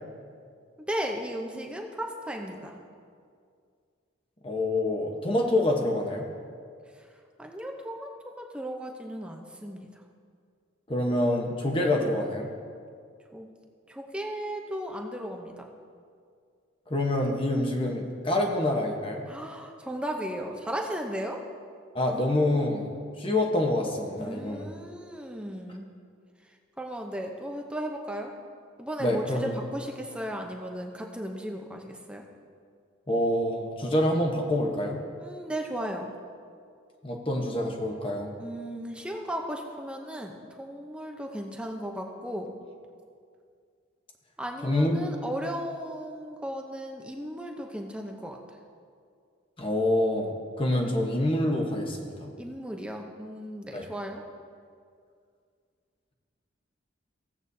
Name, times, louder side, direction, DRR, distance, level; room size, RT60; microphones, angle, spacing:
voice 1, 0.8-2.8 6.9-7.1 7.4-10.0 13.3-13.5 13.9-15.7 19.3-21.4 24.1-25.9 26.8-28.3 28.8-32.2 35.2-36.1 38.4-42.5 44.4-48.4 52.4-54.2, equal, 5° right, 2 dB, 0.7 m, -36 dB
voice 2, 4.4-6.3 10.9-12.5 16.9-19.2 21.9-22.9 23.2-24.6 29.0-29.5 33.1-35.0 37.0-38.3 44.6-45.1 49.6-52.3 53.7-53.8, left 1 dB, 25° left, 1 dB, 1.0 m, -26 dB
16.0 x 8.0 x 2.7 m, 2.2 s
head